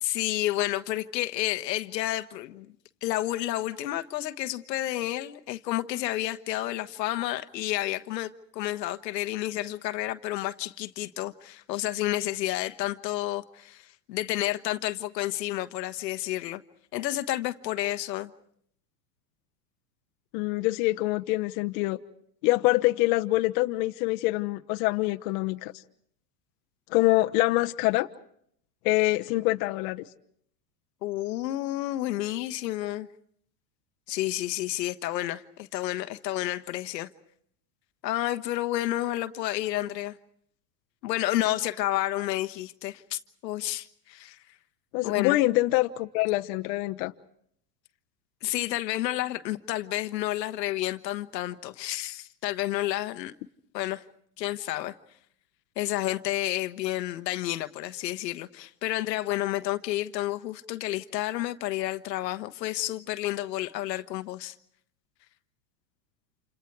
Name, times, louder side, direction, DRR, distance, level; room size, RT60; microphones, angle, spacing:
voice 1, 0.0-2.7 3.0-16.6 16.9-18.3 31.0-33.1 34.1-37.1 38.0-40.1 41.0-44.4 45.0-45.4 48.4-53.3 53.7-54.0 54.4-54.9 55.8-64.5, left 15 dB, 80° left, 1.3 m, -30 dB
voice 2, 20.3-22.0 22.4-25.7 26.9-28.1 28.8-30.0 44.9-47.1, left 19 dB, 60° left, 1.1 m, -25 dB
29.5 x 28.0 x 4.7 m
supercardioid pair, 115°, 49 cm